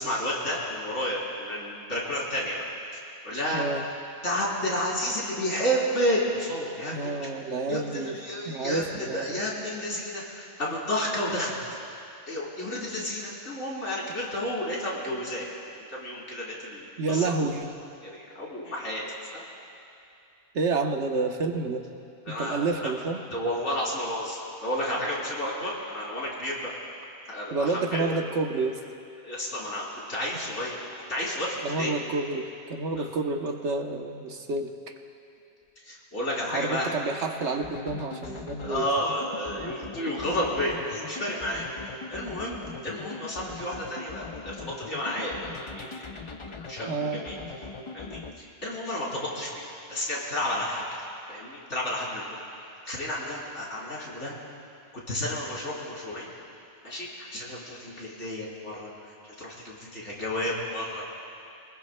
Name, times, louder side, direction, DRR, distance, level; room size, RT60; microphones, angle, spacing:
voice 1, 0.0-2.6 2.9-3.6 4.2-6.9 7.7-11.6 12.3-15.6 15.9-17.4 18.0-19.0 19.3-19.4 22.3-22.9 23.3-26.7 27.3-28.2 29.2-32.0 33.0-33.1 35.8-36.9 38.6-41.7 42.1-45.9 46.4-47.4 47.9-50.8 51.3-52.4 52.9-54.4 54.9-56.3 56.8-61.1, equal, 90° left, -6 dB, 3.9 m, -31 dB
voice 2, 3.5-3.8 6.9-8.2 8.5-9.4 17.0-17.7 20.5-21.8 22.3-23.2 27.5-28.8 31.6-34.7 36.5-38.9 46.9-47.2, right 3 dB, 90° right, 4 dB, 1.3 m, -29 dB
sound 1, 37.6-48.4, left 4 dB, 35° left, 0.5 m, -41 dB
28.5 x 20.0 x 2.2 m, 2.6 s
omnidirectional pair, 1.2 m